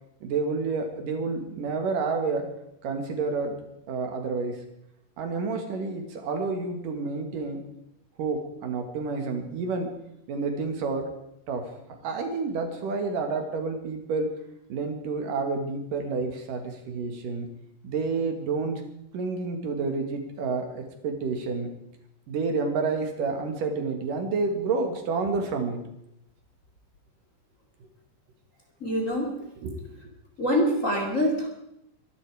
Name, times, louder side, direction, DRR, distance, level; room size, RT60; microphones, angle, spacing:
voice 1, 0.2-2.5 2.8-3.5 3.9-4.6 5.2-7.6 8.2-9.9 10.3-11.2 11.5-11.7 12.0-14.4 14.7-17.5 17.8-18.8 19.1-21.7 22.3-25.8 29.6-30.0, right 4 dB, 70° right, 4 dB, 3.5 m, -29 dB
voice 2, 28.8-29.3 30.4-31.5, equal, 25° left, 1 dB, 2.7 m, -25 dB
24.0 x 12.0 x 4.9 m, 0.80 s
omnidirectional pair, 4.0 m